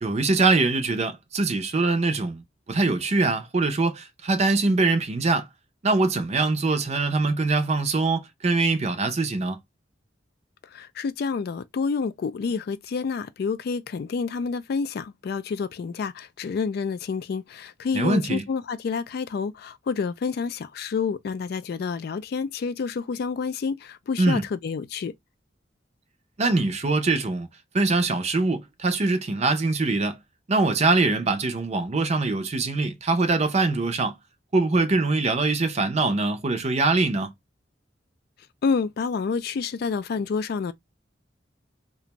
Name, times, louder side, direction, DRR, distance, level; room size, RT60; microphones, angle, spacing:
voice 1, 0.0-2.4 2.7-5.5 5.8-9.6 17.9-18.4 24.2-24.4 26.4-27.5 27.7-30.2 30.5-34.2 34.5-37.3, right 3 dB, 35° right, 0.5 m, -23 dB
voice 2, 10.6-25.1 38.6-40.7, left 5 dB, 55° left, 0.3 m, -28 dB
2.5 x 2.2 x 2.9 m
head